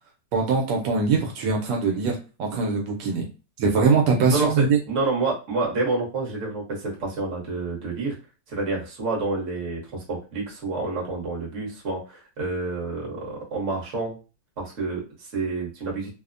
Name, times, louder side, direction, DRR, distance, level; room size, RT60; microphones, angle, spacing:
voice 1, 0.3-3.3 3.6-4.8, right 4 dB, 80° right, 1 dB, 1.2 m, -22 dB
voice 2, 4.3-8.2 8.5-14.2 14.6-16.1, right 3 dB, 50° right, -3 dB, 1.2 m, -28 dB
3.0 x 2.0 x 2.4 m, 0.33 s
omnidirectional pair, 1.8 m